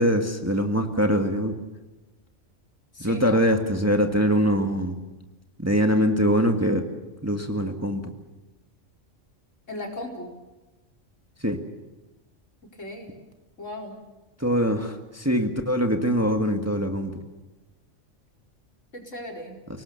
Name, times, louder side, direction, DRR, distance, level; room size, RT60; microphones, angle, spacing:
voice 1, 0.0-1.6 3.0-5.0 5.6-6.9 7.2-8.1 11.4-11.6 14.4-17.2, equal, 10° right, 4 dB, 1.7 m, -23 dB
voice 2, 2.9-3.4 9.7-10.3 12.7-13.1 13.6-13.9 18.9-19.6, left 1 dB, 75° left, 0 dB, 4.8 m, -36 dB
30.0 x 19.0 x 7.0 m, 1.1 s
omnidirectional pair, 1.3 m